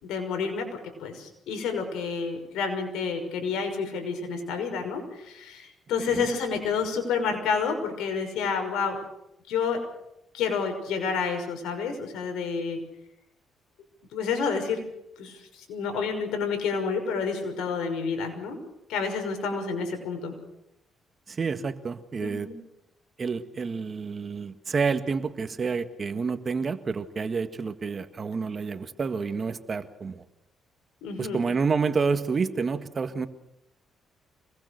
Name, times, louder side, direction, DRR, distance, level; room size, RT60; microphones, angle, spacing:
voice 1, 0.0-9.0 9.5-9.8 10.3-12.8 14.1-14.8 15.2-18.6 18.9-20.3 22.2-22.5 31.0-31.4, left 5 dB, 90° left, 5 dB, 6.0 m, -29 dB
voice 2, 21.3-22.5 23.2-30.2 31.2-33.3, right 5 dB, 40° right, 9 dB, 1.8 m, -29 dB
26.0 x 20.5 x 6.7 m, 0.83 s
cardioid pair, 90°, 0 cm